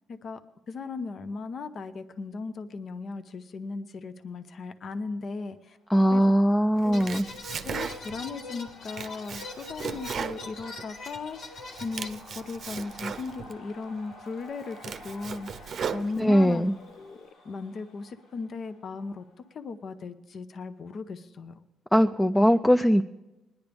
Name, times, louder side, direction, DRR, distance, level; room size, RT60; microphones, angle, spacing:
voice 1, 0.1-0.4 0.7-5.8 6.1-6.2 6.8-7.2 7.6-19.2 19.5-21.6, left 4 dB, 55° left, 10 dB, 0.7 m, -37 dB
sound 1, 5.9-19.6, left 1 dB, 90° left, 2.6 m, -52 dB
voice 2, 5.9-7.2 16.2-16.7 21.9-23.0, equal, 10° left, 7 dB, 0.4 m, -20 dB
Domestic sounds home sounds, 6.8-8.3 8.7-11.2 11.6-13.6 14.1-14.2 14.6-16.6, right 6 dB, 55° right, 0.6 m, -37 dB
sound 2, 6.9-12.1, left 3 dB, 70° left, 1.4 m, -43 dB
20.5 x 10.5 x 3.5 m, 1.0 s
cardioid pair, 90°, 0 cm